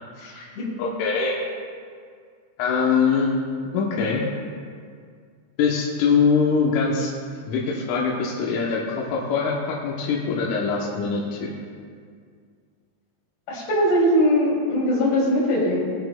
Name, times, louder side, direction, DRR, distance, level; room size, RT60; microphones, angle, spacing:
voice 1, 0.2-0.6 13.5-15.8, equal, 65° left, -6 dB, 4.7 m, -21 dB
voice 2, 0.8-1.3 2.6-3.3 3.7-4.2 5.6-7.1 7.5-11.5, left 5 dB, 90° left, -3 dB, 3.4 m, -23 dB
20.5 x 7.8 x 2.3 m, 2.1 s
omnidirectional pair, 5.4 m